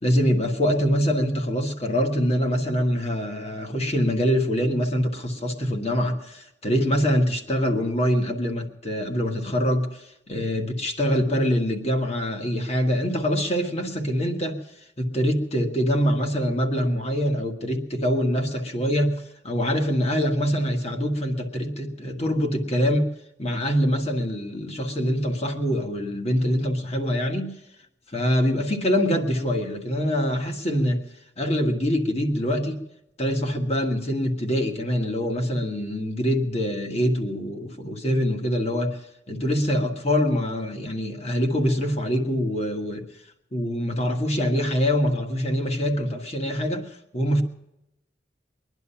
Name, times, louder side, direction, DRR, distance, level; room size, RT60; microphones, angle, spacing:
voice 1, 0.0-14.6 15.0-23.1 23.4-27.5 28.1-31.0 31.4-32.8 33.2-39.0 39.3-43.0 43.5-47.4, equal, 35° left, 4 dB, 1.7 m, -24 dB
21.5 x 11.0 x 5.7 m, 0.88 s
head